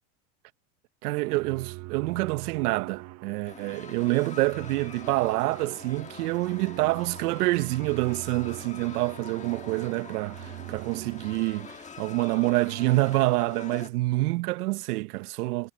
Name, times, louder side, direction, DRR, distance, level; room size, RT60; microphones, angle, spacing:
voice 1, 1.0-15.7, right 21 dB, 70° right, 1.0 m, -27 dB
sound 1, 1.2-11.8, right 19 dB, 35° right, 0.9 m, -43 dB
sound 2, 3.4-13.9, left 6 dB, 15° left, 1.6 m, -45 dB
supercardioid pair, 130°, 48 cm